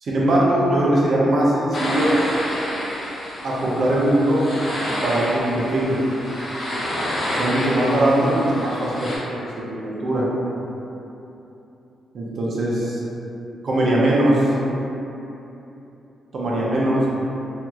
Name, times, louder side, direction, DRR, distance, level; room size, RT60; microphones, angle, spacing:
voice 1, 0.0-2.1 3.4-4.5 5.0-6.0 7.3-10.3 12.1-13.0 13.6-14.5 16.3-17.1, right 1 dB, 50° right, -5 dB, 0.6 m, -20 dB
sound 1, 1.7-9.2, equal, 50° left, 0.8 m, -28 dB
2.8 x 2.8 x 2.3 m, 3.0 s
cardioid pair, 130°, 0 cm